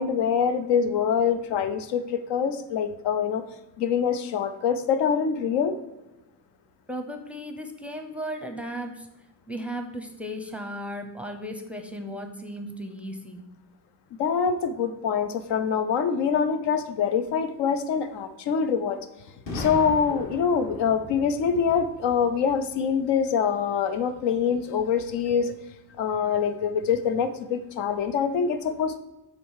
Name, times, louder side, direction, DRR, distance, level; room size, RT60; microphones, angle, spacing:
voice 1, 0.0-3.4 3.8-5.8 14.2-19.1 19.5-25.5 26.0-29.0, left 6 dB, 80° left, 10 dB, 0.7 m, -25 dB
voice 2, 6.9-9.1 9.5-13.4, equal, 5° right, 5 dB, 0.6 m, -35 dB
Boom, 19.5-23.3, left 1 dB, 50° left, 1.5 m, -39 dB
7.4 x 3.7 x 4.7 m, 1.0 s
cardioid pair, 130°, 41 cm